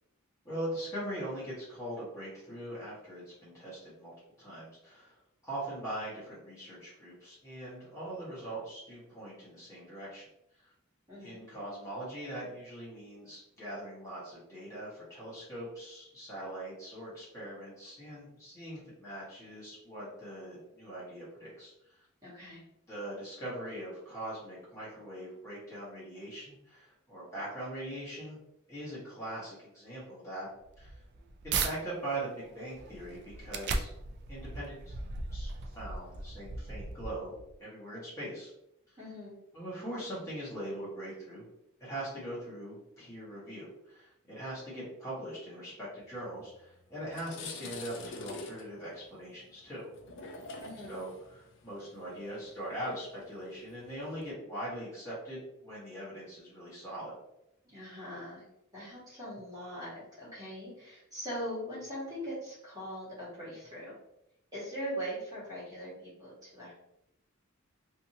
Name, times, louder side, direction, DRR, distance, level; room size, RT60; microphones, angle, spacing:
voice 1, 0.4-5.2 5.4-10.3 10.6-10.7 11.2-22.0 22.9-28.4 28.7-30.5 30.8-31.0 31.4-33.9 34.3-38.5 39.5-41.4 41.8-49.9 50.9-57.1, right 1 dB, 15° left, -10 dB, 1.2 m, -41 dB
voice 2, 11.1-11.4 22.2-22.6 39.0-39.4 50.6-51.1 57.6-58.4 58.7-64.0 64.5-65.9 66.2-66.7, equal, 15° right, -9 dB, 1.2 m, -41 dB
sound 1, 30.6-31.7 32.3-37.5, right 4 dB, 50° right, 0.3 m, -37 dB
sound 2, 46.5-46.6 47.0-54.3, left 3 dB, 55° left, 0.4 m, -47 dB
2.7 x 2.6 x 2.7 m, 0.82 s
head